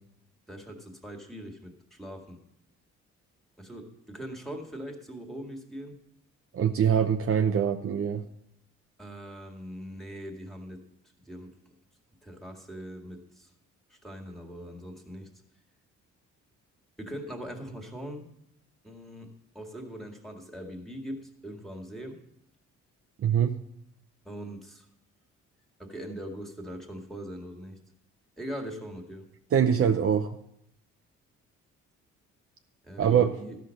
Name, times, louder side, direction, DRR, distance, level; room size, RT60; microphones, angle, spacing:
voice 1, 0.5-2.4 3.6-6.0 9.0-10.9 11.2-11.6 12.2-13.5 13.9-15.3 17.0-18.3 18.8-22.2 24.3-24.9 25.8-27.8 28.4-29.3 32.8-33.6, equal, ahead, 2 dB, 2.0 m, -41 dB
voice 2, 6.5-8.2 23.2-23.6 29.5-30.3 33.0-33.4, right 8 dB, 45° right, 6 dB, 0.7 m, -23 dB
13.0 x 6.0 x 6.4 m, 0.77 s
cardioid pair, 90°, 30 cm